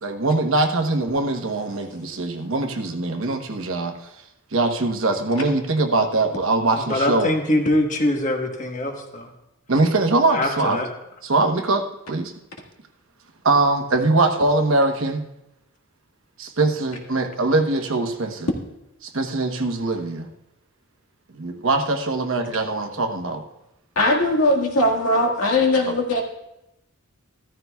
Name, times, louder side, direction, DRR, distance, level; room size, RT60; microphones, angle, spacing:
voice 1, 0.0-3.9 4.5-7.3 9.7-10.8 11.2-12.3 13.4-15.2 16.4-18.5 19.0-20.3 21.3-23.4, right 2 dB, 60° right, 4 dB, 1.0 m, -22 dB
voice 2, 6.8-9.3 10.3-10.9, left 1 dB, 35° left, 3 dB, 1.3 m, -23 dB
voice 3, 24.0-26.2, left 1 dB, 75° left, 0 dB, 1.8 m, -19 dB
14.5 x 13.5 x 2.3 m, 0.89 s
head